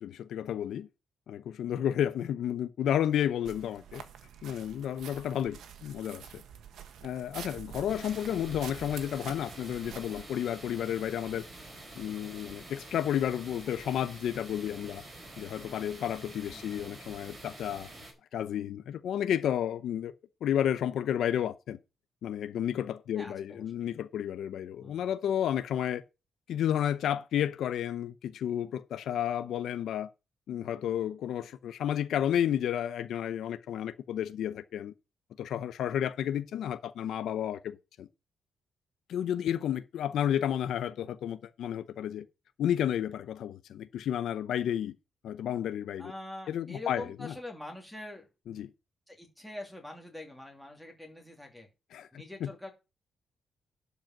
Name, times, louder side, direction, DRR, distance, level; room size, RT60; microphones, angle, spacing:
voice 1, 0.0-0.9 1.3-4.0 4.4-6.4 7.0-11.5 12.0-15.0 15.4-17.9 18.3-20.1 20.4-21.8 22.2-26.0 26.5-30.1 30.5-34.9 35.4-38.1 39.1-42.2 42.6-44.9 45.2-46.1 46.5-47.0 48.5-48.7 51.9-52.1 52.4-52.5, left 10 dB, 70° left, 0.7 m, -31 dB
sound 1, 3.4-10.2, right 8 dB, 80° right, 1.4 m, -47 dB
sound 2, 7.9-18.1, right 2 dB, 30° right, 4.7 m, -48 dB
voice 2, 16.5-16.9 23.2-23.9 24.8-25.1 46.0-48.3 49.1-51.7 52.1-52.7, left 2 dB, ahead, 2.8 m, -44 dB
12.0 x 5.2 x 6.0 m
cardioid pair, 165°, 0 cm